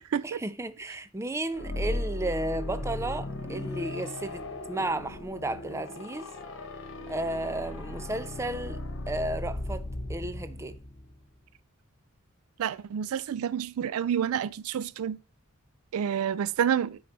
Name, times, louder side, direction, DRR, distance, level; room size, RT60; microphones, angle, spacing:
voice 1, 0.2-4.4 4.7-6.3 7.1-8.8 9.1-9.8 10.1-10.7, right 2 dB, 15° right, 0.5 m, -33 dB
sound 1, 1.5-11.2, left 2 dB, 65° left, 1.3 m, -36 dB
voice 2, 12.6-15.2 15.9-17.0, right 8 dB, 85° right, 0.4 m, -28 dB
9.3 x 3.9 x 4.3 m
head